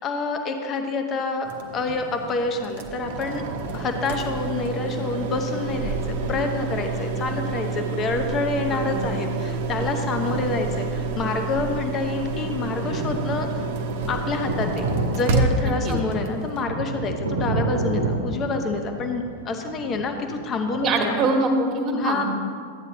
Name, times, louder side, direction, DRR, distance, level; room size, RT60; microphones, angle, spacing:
voice 1, 0.0-1.5 1.7-3.4 3.7-13.5 14.1-14.8 15.1-21.2 21.9-22.2, left 3 dB, 30° left, 5 dB, 1.1 m, -27 dB
sound 1, 1.4-16.6, right 3 dB, 50° right, 1.0 m, -29 dB
sound 2, 12.8-21.1, right 2 dB, 75° right, 1.1 m, -30 dB
voice 2, 15.6-16.0 20.8-22.2, right 2 dB, 25° right, 1 dB, 1.7 m, -24 dB
14.0 x 9.5 x 3.1 m, 2.1 s
figure-of-eight pair, 90°, 0 cm